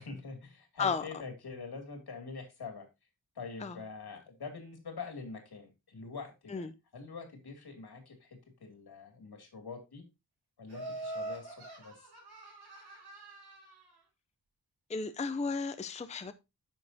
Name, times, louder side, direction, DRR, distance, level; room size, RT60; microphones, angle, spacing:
voice 1, 0.0-2.9 3.3-6.6 6.9-10.0 10.6-12.1, left 4 dB, 75° left, 2.5 m, -45 dB
Laughter, 10.7-13.9, right 2 dB, 80° right, 4.9 m, -43 dB
voice 2, 14.9-16.3, left 4 dB, 20° left, 0.5 m, -34 dB
9.9 x 6.5 x 2.7 m
wide cardioid pair, 130°, 38 cm